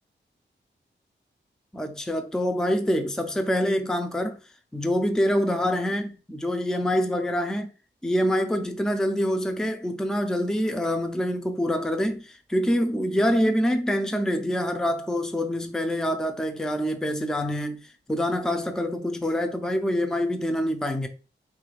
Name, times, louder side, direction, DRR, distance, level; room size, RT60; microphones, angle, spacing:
voice 1, 1.7-4.4 4.7-7.7 8.0-21.1, equal, 5° left, 0.4 m, -26 dB
3.2 x 2.4 x 3.1 m
wide cardioid pair, 75°, 19 cm